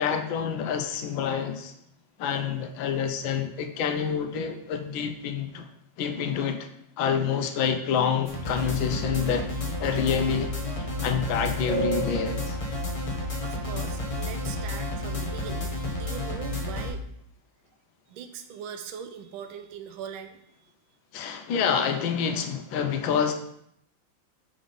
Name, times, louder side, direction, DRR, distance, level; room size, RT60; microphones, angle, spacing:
voice 1, 0.0-1.7 2.2-5.7 6.0-6.7 7.0-9.5 9.8-10.5 11.0-12.6 21.1-23.3, left 7 dB, 85° left, 6 dB, 1.4 m, -27 dB
sound 1, 8.3-16.9, left 1 dB, 55° left, 0.3 m, -31 dB
voice 2, 13.4-17.0 18.1-20.7, right 7 dB, 90° right, 7 dB, 1.4 m, -41 dB
5.1 x 4.0 x 5.1 m, 0.73 s
omnidirectional pair, 2.1 m